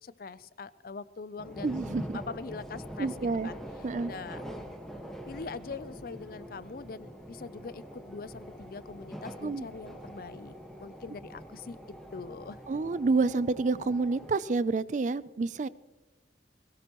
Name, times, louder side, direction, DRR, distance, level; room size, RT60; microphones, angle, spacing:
voice 1, 0.0-1.8 2.1-3.6 4.1-4.4 5.3-12.8, left 4 dB, 50° left, 17 dB, 0.5 m, -43 dB
sound 1, 1.4-14.3, equal, ahead, 1.4 m, -44 dB
voice 2, 1.6-2.2 3.0-3.5 3.8-4.1 9.4-9.7 12.7-15.7, right 3 dB, 40° right, 18 dB, 0.4 m, -28 dB
21.5 x 17.5 x 3.0 m, 1.1 s
head